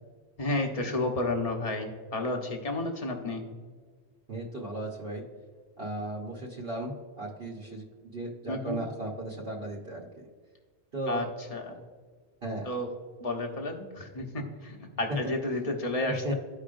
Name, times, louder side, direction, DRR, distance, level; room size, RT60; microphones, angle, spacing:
voice 1, 0.4-3.4 8.5-8.8 11.1-11.7 12.6-12.9 13.2-16.3, left 2 dB, 35° left, 3 dB, 1.1 m, -31 dB
voice 2, 4.3-5.2 5.8-7.8 8.1-10.3 10.9-11.3 12.4-12.7 15.2-15.3 16.2-16.3, right 1 dB, 65° right, -3 dB, 1.3 m, -36 dB
14.0 x 4.9 x 2.5 m, 1.5 s
omnidirectional pair, 1.1 m